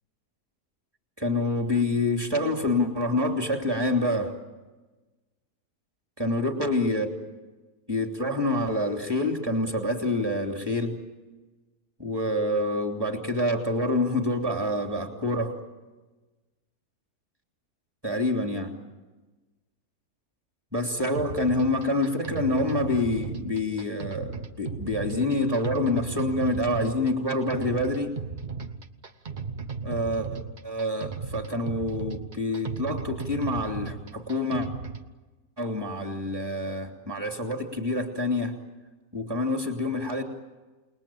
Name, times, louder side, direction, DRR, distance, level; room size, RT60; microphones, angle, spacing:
voice 1, 1.2-4.3 6.2-7.1 7.9-11.0 12.0-15.6 18.0-18.7 20.7-28.1 29.8-30.3 30.6-34.7 35.6-38.5 39.1-40.2, left 1 dB, 15° right, 2 dB, 3.1 m, -27 dB
sound 1, 21.2-35.1, right 5 dB, 35° right, 1.0 m, -36 dB
29.0 x 20.5 x 9.0 m, 1.2 s
omnidirectional pair, 1.7 m